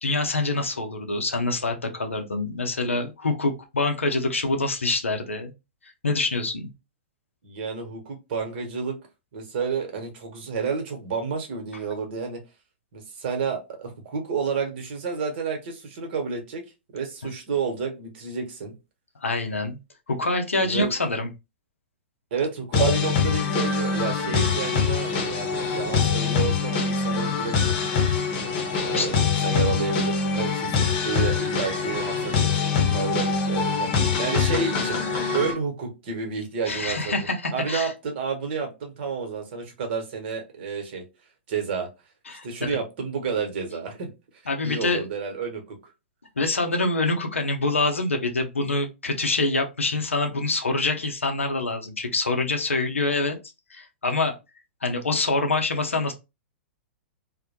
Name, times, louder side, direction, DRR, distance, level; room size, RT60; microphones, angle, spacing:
voice 1, 0.0-5.5 6.0-6.7 19.2-19.8 20.1-21.3 28.9-29.1 29.5-29.8 36.7-37.9 42.3-42.8 44.5-45.1 46.4-53.4 53.7-54.3 54.8-56.1, left 2 dB, 85° left, 0.6 m, -25 dB
voice 2, 7.4-9.0 9.3-12.4 12.9-16.6 16.9-18.7 20.6-20.9 22.3-27.8 28.7-41.0 41.5-41.9 42.3-44.1 44.6-45.8, right 5 dB, 55° right, 0.9 m, -30 dB
sound 1, 22.7-35.5, left 5 dB, 45° left, 0.7 m, -24 dB
2.1 x 2.0 x 2.8 m
figure-of-eight pair, 110°, 7 cm